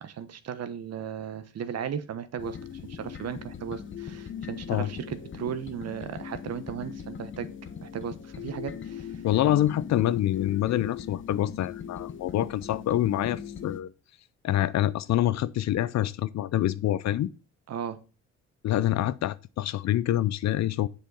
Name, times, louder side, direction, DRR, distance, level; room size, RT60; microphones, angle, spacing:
voice 1, 0.0-7.5 7.8-9.2 17.7-18.0, right 8 dB, 55° right, 1.1 m, -36 dB
sound 1, 2.4-13.8, left 7 dB, 40° left, 1.1 m, -40 dB
voice 2, 9.2-13.9 14.4-17.3 18.6-20.9, left 13 dB, 65° left, 0.6 m, -26 dB
7.5 x 6.7 x 5.4 m
cardioid pair, 90°, 30 cm